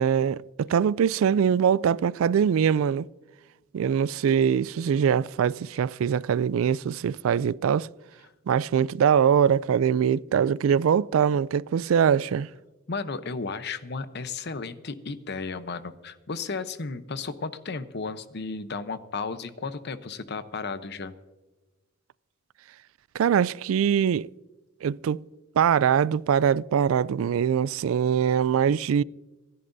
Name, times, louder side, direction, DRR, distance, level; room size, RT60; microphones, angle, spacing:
voice 1, 0.0-3.1 3.7-7.9 8.5-12.5 23.1-24.3 24.8-25.2 25.6-29.0, right 8 dB, 85° right, 0.3 m, -23 dB
voice 2, 12.9-21.1, left 4 dB, 55° left, 0.8 m, -34 dB
27.0 x 11.0 x 2.7 m
head